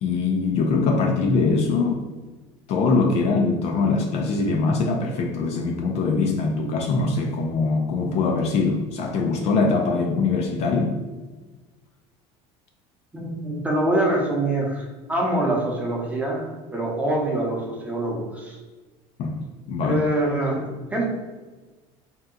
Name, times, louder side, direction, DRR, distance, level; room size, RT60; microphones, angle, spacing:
voice 1, 0.0-2.0 2.7-11.0 19.2-19.4 19.7-20.0, left 4 dB, 50° left, 3 dB, 0.4 m, -22 dB
voice 2, 13.1-18.6 19.9-21.0, right 1 dB, 10° right, -2 dB, 0.7 m, -25 dB
2.7 x 2.2 x 3.7 m, 1.3 s
cardioid pair, 135°, 14 cm